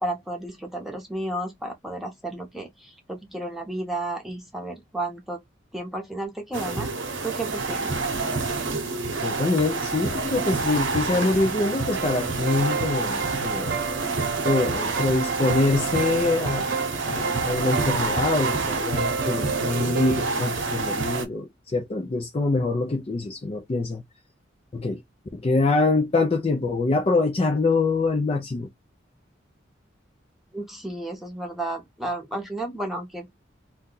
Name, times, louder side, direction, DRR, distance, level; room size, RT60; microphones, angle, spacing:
voice 1, 0.0-5.4 5.7-6.9 7.2-7.9 30.5-33.3, right 1 dB, ahead, 0.8 m, -32 dB
sound 1, 6.5-21.2, right 3 dB, 75° right, 0.9 m, -28 dB
voice 2, 9.2-13.9 14.4-16.7 17.0-24.0 24.7-25.0 25.3-28.7, left 3 dB, 30° left, 0.4 m, -24 dB
sound 2, 11.9-20.2, right 6 dB, 50° right, 0.4 m, -32 dB
2.7 x 2.2 x 3.7 m
head